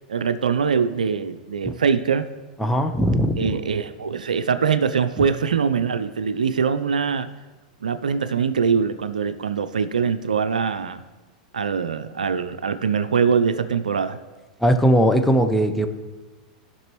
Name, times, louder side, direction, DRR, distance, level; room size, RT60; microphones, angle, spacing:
voice 1, 0.1-2.3 3.4-7.3 7.8-11.0 11.5-14.2, right 6 dB, 85° right, 11 dB, 0.5 m, -23 dB
voice 2, 2.6-3.5 5.2-5.3 14.6-15.9, equal, 5° left, 5 dB, 0.9 m, -19 dB
17.5 x 6.0 x 3.1 m, 1.2 s
hypercardioid pair, 100°, 4 cm